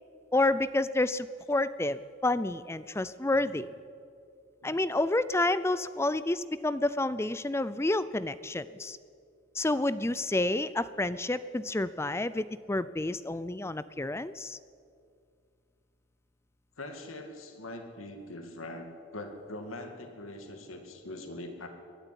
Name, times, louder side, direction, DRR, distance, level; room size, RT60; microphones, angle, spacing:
voice 1, 0.3-3.7 4.6-9.0 9.6-14.6, left 2 dB, 15° left, 16 dB, 0.4 m, -29 dB
voice 2, 3.3-3.7 4.6-4.7 16.8-21.7, left 1 dB, 90° left, 5 dB, 2.4 m, -42 dB
21.5 x 12.0 x 10.0 m, 2.3 s
head